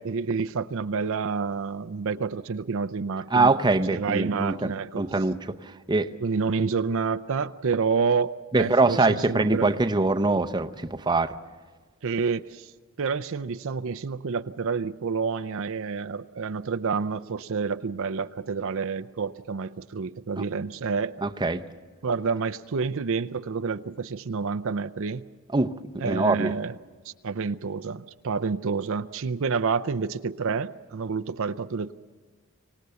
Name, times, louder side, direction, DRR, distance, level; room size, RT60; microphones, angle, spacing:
voice 1, 0.0-3.5 3.9-5.1 6.2-9.7 12.0-12.7 13.0-21.1 22.0-25.3 26.0-26.8 27.1-31.9, right 5 dB, 65° right, 0.5 m, -28 dB
voice 2, 3.3-5.4 5.9-6.1 8.5-11.3 21.2-21.6 25.5-26.5, right 3 dB, 20° right, 0.7 m, -23 dB
25.0 x 18.5 x 6.9 m
head